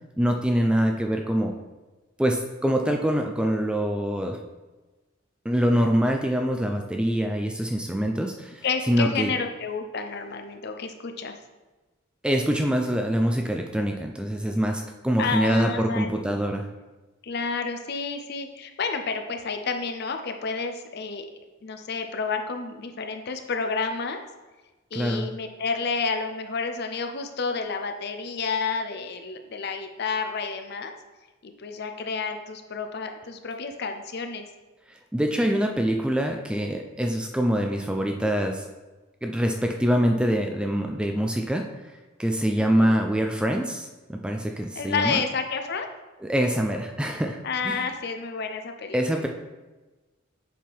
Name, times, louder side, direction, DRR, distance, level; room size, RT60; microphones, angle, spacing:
voice 1, 0.2-1.5 2.2-4.4 5.4-9.3 12.2-16.7 24.9-25.3 34.9-38.7 39.2-41.7 42.2-45.2 46.2-47.4 47.6-47.9 48.9-49.3, equal, 5° right, 3 dB, 0.3 m, -24 dB
voice 2, 8.6-11.4 15.2-16.2 17.2-21.3 21.6-24.2 24.9-30.9 31.4-34.5 42.6-43.0 44.8-45.9 47.4-49.2, left 4 dB, 55° left, 6 dB, 0.6 m, -30 dB
7.3 x 3.6 x 4.6 m, 1.2 s
head